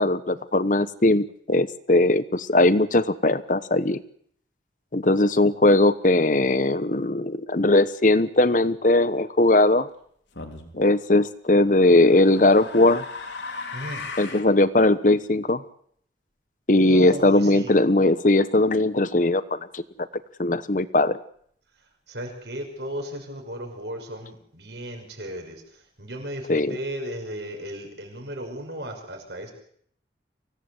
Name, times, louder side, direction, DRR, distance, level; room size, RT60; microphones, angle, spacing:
voice 1, 0.0-4.0 4.9-9.9 10.7-13.1 14.2-15.6 16.7-19.8 20.4-21.2 26.5-26.8, left 2 dB, 45° left, 14 dB, 1.0 m, -19 dB
sound 1, 10.4-10.7 11.7-14.5, left 4 dB, 85° left, 3.5 m, -37 dB
voice 2, 16.8-17.7 22.1-25.6 26.0-29.5, equal, 70° right, 3 dB, 6.1 m, -35 dB
24.5 x 17.0 x 8.0 m, 0.66 s
head